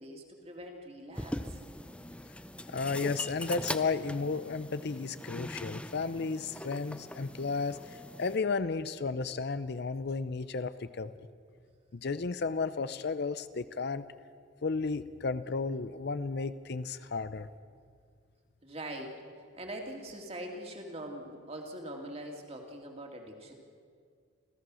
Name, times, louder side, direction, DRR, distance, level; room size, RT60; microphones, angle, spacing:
voice 1, 0.0-1.6 18.6-23.5, right 1 dB, 30° right, 2 dB, 2.5 m, -43 dB
sound 1, 1.1-8.4, left 1 dB, 5° left, 0.5 m, -41 dB
voice 2, 2.7-11.1 11.9-14.0 14.6-17.5, left 4 dB, 55° left, 14 dB, 0.6 m, -33 dB
28.0 x 15.0 x 6.3 m, 2.1 s
head